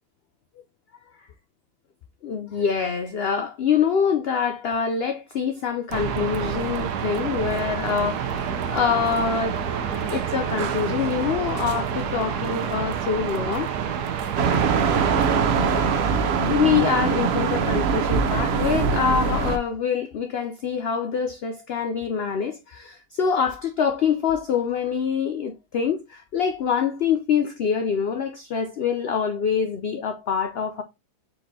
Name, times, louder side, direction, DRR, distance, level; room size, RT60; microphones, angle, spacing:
voice 1, 2.2-13.7 14.6-14.7 16.5-30.8, left 7 dB, 85° left, 0.5 m, -25 dB
sound 1, 5.9-15.4, right 7 dB, 85° right, 1.3 m, -28 dB
sound 2, 14.4-19.6, right 5 dB, 60° right, 0.7 m, -22 dB
4.4 x 4.1 x 2.6 m
omnidirectional pair, 1.7 m